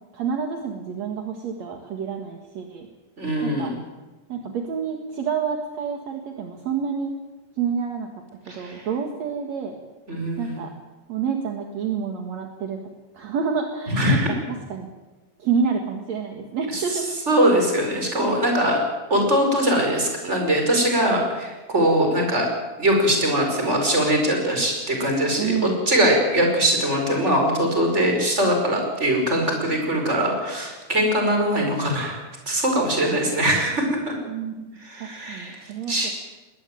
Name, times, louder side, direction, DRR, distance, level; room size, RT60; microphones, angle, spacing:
voice 1, 0.1-2.9 3.4-3.7 4.3-7.1 7.6-8.1 8.5-9.8 10.4-10.7 11.1-12.8 13.1-14.4 14.7-14.9 15.4-17.1 25.4-25.8 34.3-34.7 35.0-36.1, right 6 dB, 60° right, 3 dB, 2.9 m, -28 dB
voice 2, 3.2-3.8 8.5-8.9 10.1-10.6 13.9-14.3 16.7-16.8 17.3-18.8 19.1-22.5 22.8-34.1 34.8-36.1, right 1 dB, 20° right, 2 dB, 5.4 m, -22 dB
21.0 x 17.5 x 9.3 m, 1.2 s
omnidirectional pair, 3.6 m